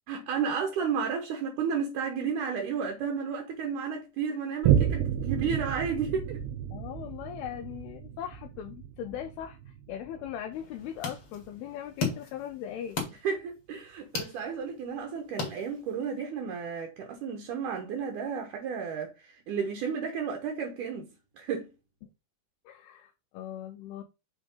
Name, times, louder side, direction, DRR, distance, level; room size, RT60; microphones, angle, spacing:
voice 1, 0.1-6.4 13.2-21.7, right 6 dB, 70° right, 2.1 m, -32 dB
Boom, 4.6-11.6 12.1-12.2, right 10 dB, 90° right, 2.8 m, -31 dB
voice 2, 6.7-13.0 22.7-24.0, left 10 dB, 80° left, 2.5 m, -39 dB
sound 1, 10.5-16.2, left 5 dB, 45° left, 2.1 m, -38 dB
6.9 x 3.7 x 5.3 m
omnidirectional pair, 4.8 m